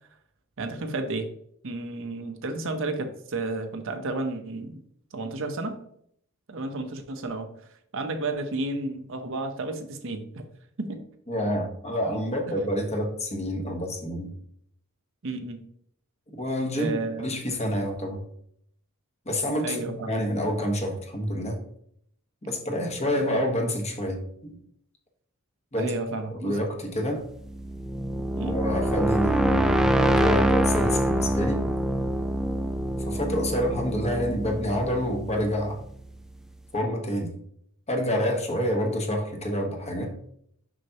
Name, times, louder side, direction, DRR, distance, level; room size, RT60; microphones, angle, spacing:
voice 1, 0.6-1.3 1.6-4.8 5.1-5.8 6.5-7.5 7.9-10.4 10.8-11.0 15.2-15.6 16.7-17.3 19.6-19.9 25.8-26.6 28.3-28.6, right 2 dB, 65° right, 6 dB, 0.8 m, -32 dB
voice 2, 11.3-14.3 16.4-18.2 19.2-21.6 22.4-24.6 25.7-26.0 26.3-27.2 28.4-31.6 33.1-35.8 36.7-37.3 37.9-40.1, equal, 30° left, 2 dB, 1.2 m, -28 dB
sound 1, 27.3-36.2, right 1 dB, ahead, 0.3 m, -25 dB
6.2 x 5.7 x 2.9 m, 0.68 s
head